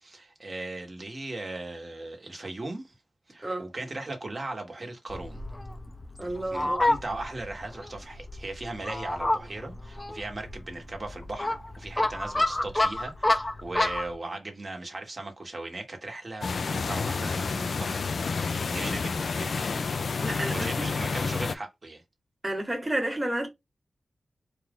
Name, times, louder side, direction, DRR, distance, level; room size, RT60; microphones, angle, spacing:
voice 1, 0.0-2.9 3.3-5.4 6.3-18.2 18.5-19.8 20.5-22.0, right 2 dB, 40° right, 1.4 m, -38 dB
Fowl, 5.1-14.1, left 2 dB, 20° left, 0.6 m, -29 dB
voice 2, 6.2-6.8 20.2-20.9 22.4-23.5, right 1 dB, 15° right, 1.5 m, -31 dB
sound 1, 16.4-21.5, left 4 dB, 70° left, 0.3 m, -29 dB
4.4 x 2.5 x 3.6 m
wide cardioid pair, 95°, 0 cm